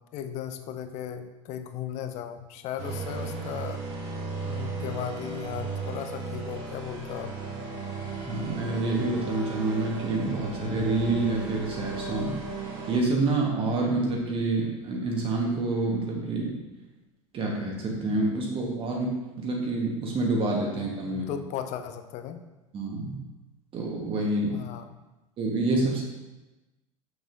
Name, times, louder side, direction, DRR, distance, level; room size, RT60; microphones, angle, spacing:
voice 1, 0.1-3.8 4.4-7.3 21.0-22.4 24.5-24.9, left 9 dB, 40° left, 9 dB, 0.6 m, -36 dB
sound 1, 2.8-13.0, right 3 dB, 55° right, 1.3 m, -35 dB
voice 2, 8.3-12.4 12.9-16.6 17.3-21.3 22.7-23.2 23.7-24.6 25.4-26.0, right 2 dB, 30° right, -1 dB, 1.2 m, -27 dB
6.8 x 6.3 x 2.6 m, 1.1 s
figure-of-eight pair, 75°, 17 cm